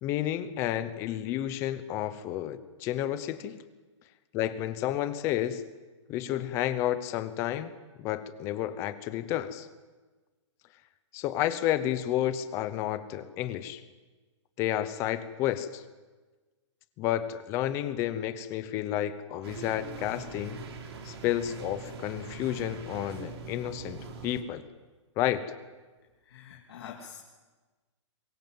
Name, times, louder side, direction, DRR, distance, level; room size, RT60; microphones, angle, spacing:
voice 1, 0.0-3.6 4.3-5.6 6.1-7.7 8.0-9.7 11.1-13.8 14.6-15.8 17.0-20.6 21.0-24.6 25.2-25.4, left 12 dB, 15° left, 13 dB, 0.8 m, -31 dB
sound 1, 19.4-24.4, right 5 dB, 55° right, 3.8 m, -42 dB
voice 2, 26.2-27.2, left 8 dB, 50° left, -1 dB, 2.8 m, -45 dB
23.5 x 21.0 x 7.7 m, 1.3 s
hypercardioid pair, 170°, 16 cm